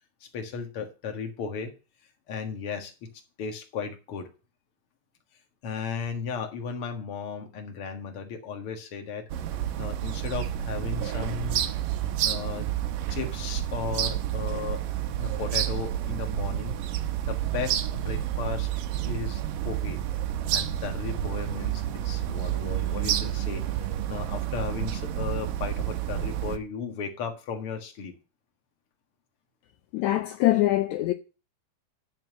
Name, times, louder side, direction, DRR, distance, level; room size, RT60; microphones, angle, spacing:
voice 1, 0.2-1.7 2.3-3.1 3.4-4.3 5.6-9.3 9.8-11.6 12.2-12.7 13.1-14.8 15.2-16.8 17.3-18.7 19.0-20.0 20.5-28.1, left 6 dB, 50° left, 2.1 m, -35 dB
sound 1, 9.3-26.6, right 11 dB, 80° right, 2.5 m, -29 dB
voice 2, 29.9-31.1, left 16 dB, 80° left, 1.7 m, -23 dB
11.0 x 4.5 x 7.6 m
omnidirectional pair, 4.0 m